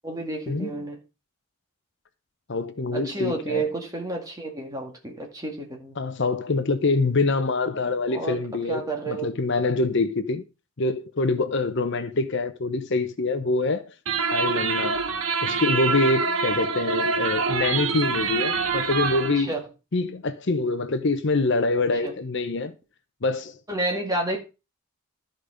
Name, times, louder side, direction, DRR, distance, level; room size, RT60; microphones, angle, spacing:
voice 1, 0.0-1.0 2.9-6.0 8.1-9.3 19.4-19.6 22.0-22.1 23.7-24.4, right 2 dB, 15° right, 2.0 m, -30 dB
voice 2, 2.5-3.7 6.0-8.8 9.1-10.4 10.8-13.9 14.3-15.0 15.4-19.5 19.9-22.7 23.2-23.5, left 3 dB, 55° left, 0.7 m, -25 dB
sound 1, 14.1-19.4, right 4 dB, 65° right, 1.0 m, -25 dB
12.5 x 5.3 x 5.0 m
head